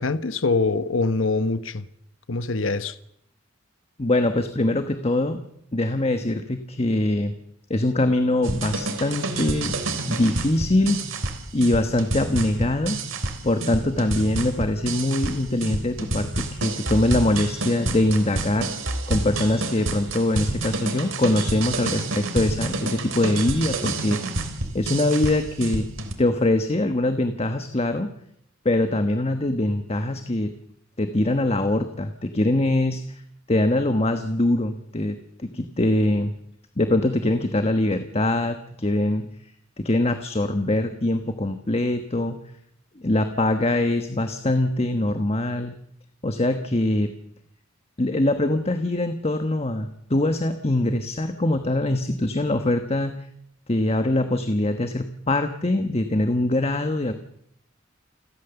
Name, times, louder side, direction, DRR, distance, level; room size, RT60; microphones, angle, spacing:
voice 1, 0.0-1.9 2.3-3.0, left 3 dB, 70° left, 1.1 m, -24 dB
voice 2, 4.0-5.4 5.7-7.3 7.7-11.0 11.5-13.0 13.4-18.7 19.1-24.2 24.7-25.9 26.2-28.1 28.6-30.5 31.0-33.2 33.5-36.3 36.8-39.3 39.8-42.4 43.0-45.7 46.2-47.1 48.0-53.1 53.7-57.1, left 1 dB, 30° left, 1.3 m, -23 dB
sound 1, 8.4-26.1, right 2 dB, 85° right, 3.3 m, -29 dB
28.5 x 12.5 x 7.1 m
head